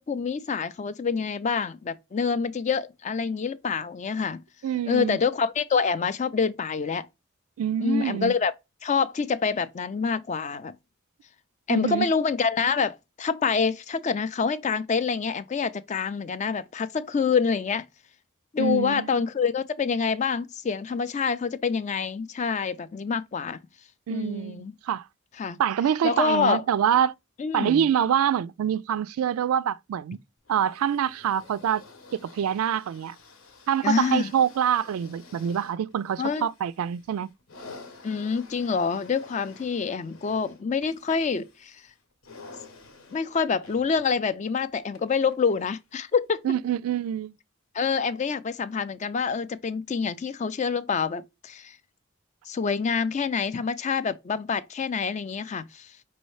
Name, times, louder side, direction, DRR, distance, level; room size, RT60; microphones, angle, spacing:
voice 1, 0.0-4.4 4.9-7.1 7.8-8.5 8.8-10.7 11.7-17.8 18.5-23.6 24.1-24.7 25.4-25.6 26.0-26.6 27.4-27.8 33.8-34.3 36.2-36.5 38.0-41.8 43.1-46.5 47.7-51.8 52.5-55.9, left 5 dB, 35° left, 0.3 m, -26 dB
voice 2, 4.6-5.2 7.6-8.3 11.7-12.1 18.6-19.1 24.1-25.0 25.6-27.1 27.5-30.2 30.5-31.8 32.2-33.2 33.7-37.3 46.4-47.3, right 9 dB, 85° right, 0.3 m, -25 dB
sound 1, 30.4-45.9 46.7-46.8, left 3 dB, 70° left, 0.9 m, -50 dB
5.4 x 3.1 x 3.1 m
head